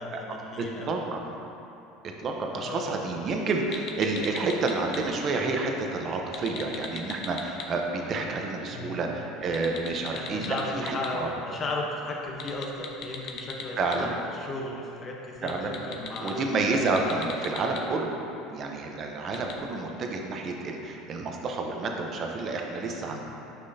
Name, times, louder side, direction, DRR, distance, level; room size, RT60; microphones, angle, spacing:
voice 1, 0.0-0.9 2.5-2.8 8.7-9.1 10.1-17.2 23.1-23.2, left 2 dB, 30° left, 0 dB, 1.0 m, -36 dB
voice 2, 0.6-1.3 2.2-11.3 13.8-14.2 15.4-18.2 18.5-23.2, right 3 dB, 35° right, 2 dB, 0.8 m, -29 dB
sound 1, 3.7-5.0 6.2-7.6 9.4-11.1 12.3-13.9 15.4-16.3 16.8-17.8 19.3-19.5, left 7 dB, 50° left, 0.7 m, -37 dB
9.8 x 6.0 x 2.8 m, 2.9 s
cardioid pair, 140°, 0 cm